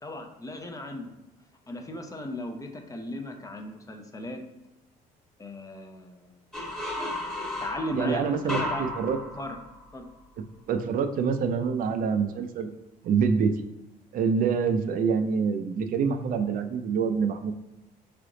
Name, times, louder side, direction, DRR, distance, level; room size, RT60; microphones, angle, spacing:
voice 1, 0.0-1.1 1.7-4.4 5.4-6.4 7.6-8.9 9.4-9.6 9.9-10.1, left 1 dB, 20° left, 5 dB, 0.6 m, -36 dB
sound 1, 6.5-10.1, left 1 dB, ahead, 1.1 m, -34 dB
voice 2, 7.9-9.2 10.7-12.7 13.0-13.5 14.1-17.5, right 6 dB, 55° right, 7 dB, 0.4 m, -26 dB
3.6 x 3.4 x 3.8 m, 0.94 s
cardioid pair, 110°, 17 cm